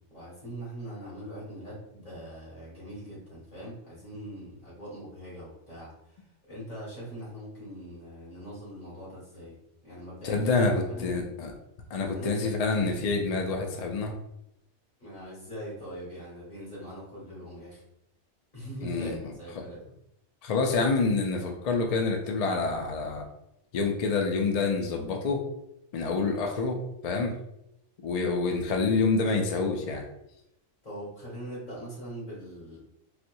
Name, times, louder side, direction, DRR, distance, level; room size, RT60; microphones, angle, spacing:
voice 1, 0.1-9.6 9.8-11.3 12.0-12.4 15.0-17.8 18.5-19.8 30.8-32.8, right 1 dB, 40° left, -7 dB, 1.8 m, -42 dB
voice 2, 10.2-11.5 11.9-14.1 18.8-19.1 20.4-23.2 23.7-25.4 25.9-27.3 28.0-30.0, left 4 dB, 75° left, 3 dB, 0.3 m, -27 dB
4.1 x 2.1 x 2.6 m, 0.81 s
omnidirectional pair, 1.2 m